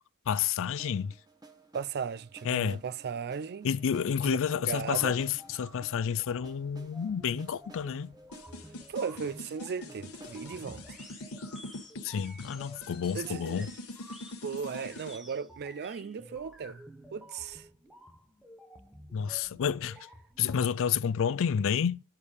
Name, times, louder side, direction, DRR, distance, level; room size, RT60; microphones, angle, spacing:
voice 1, 0.3-1.1 2.4-2.8 3.6-8.1 12.0-13.7 19.1-20.0 20.4-22.0, left 7 dB, 65° left, 0.4 m, -30 dB
sound 1, 0.8-12.7, right 3 dB, 20° right, 1.1 m, -56 dB
voice 2, 1.7-3.7 4.2-5.2 8.9-10.8 13.1-13.7 14.4-16.8 17.1-17.7, right 6 dB, 50° right, 0.4 m, -36 dB
sound 2, 4.8-20.6, equal, ahead, 0.8 m, -52 dB
sound 3, 8.3-15.2, left 2 dB, 80° left, 1.3 m, -44 dB
8.7 x 4.4 x 4.9 m
head